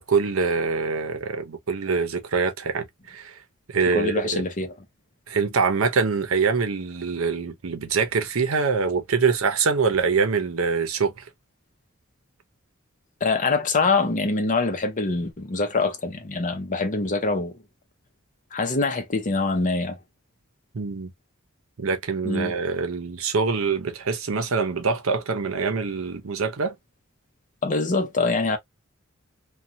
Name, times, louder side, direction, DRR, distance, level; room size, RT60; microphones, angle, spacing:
voice 1, 0.0-3.3 3.7-4.4 5.3-11.2 20.7-21.1 21.8-26.7, right 5 dB, 80° right, 0.7 m, -24 dB
voice 2, 3.9-4.7 13.2-17.6 18.5-20.0 22.2-22.5 27.6-28.6, left 3 dB, 40° left, 0.7 m, -24 dB
2.6 x 2.3 x 2.7 m
head